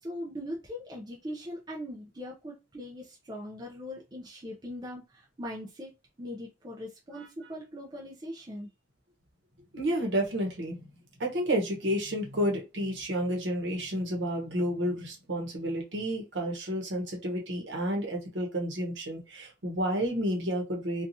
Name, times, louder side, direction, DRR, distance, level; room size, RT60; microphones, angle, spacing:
voice 1, 0.0-5.9 6.2-8.7, equal, 20° right, 0.4 m, -40 dB
voice 2, 9.7-10.9 11.2-21.0, equal, 65° right, 0.9 m, -30 dB
2.8 x 2.3 x 2.6 m
head